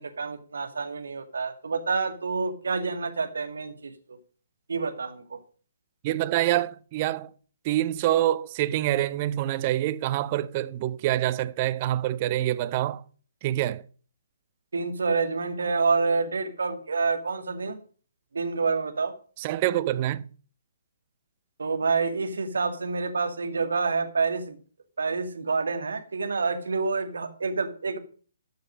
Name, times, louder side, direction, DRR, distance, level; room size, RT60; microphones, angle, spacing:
voice 1, 0.0-4.2 4.7-5.4 14.7-17.8 18.3-19.1 21.6-24.6 25.0-28.0, right 4 dB, 60° right, 2.0 m, -28 dB
voice 2, 6.0-7.3 7.6-13.0 13.4-13.8 19.4-20.2, right 14 dB, 30° right, 0.6 m, -26 dB
13.5 x 6.4 x 6.3 m
figure-of-eight pair, 130°, 0 cm